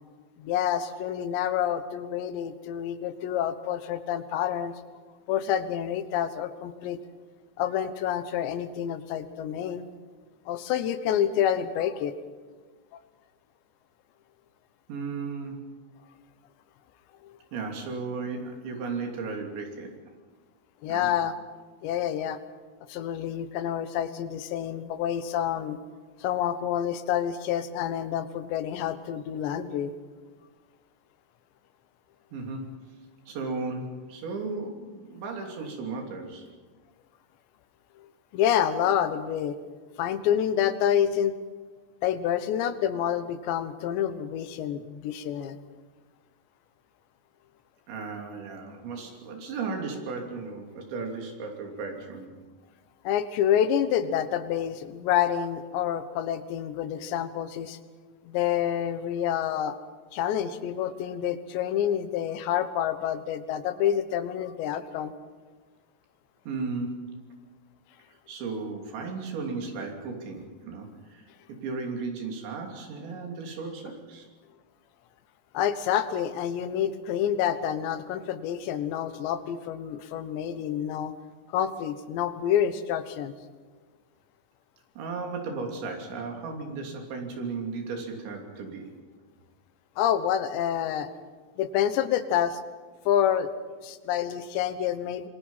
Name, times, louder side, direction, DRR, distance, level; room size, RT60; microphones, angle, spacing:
voice 1, 0.4-4.7 5.3-7.0 7.6-9.9 10.5-12.1 20.8-21.3 21.8-22.4 22.9-25.8 26.2-29.9 38.3-39.6 40.0-41.4 42.0-45.6 53.0-57.8 58.2-59.8 60.1-65.1 75.5-81.1 81.5-83.3 90.0-91.1 91.6-92.6 93.1-93.5 93.8-95.3, left 10 dB, 80° left, 11 dB, 3.4 m, -28 dB
voice 2, 14.9-15.6 17.5-19.9 20.9-21.1 32.3-32.8 33.3-36.5 47.9-52.4 66.5-67.2 68.3-74.3 85.0-88.9, right 4 dB, 85° right, 2 dB, 5.4 m, -35 dB
26.0 x 23.0 x 5.7 m, 1.4 s
omnidirectional pair, 5.0 m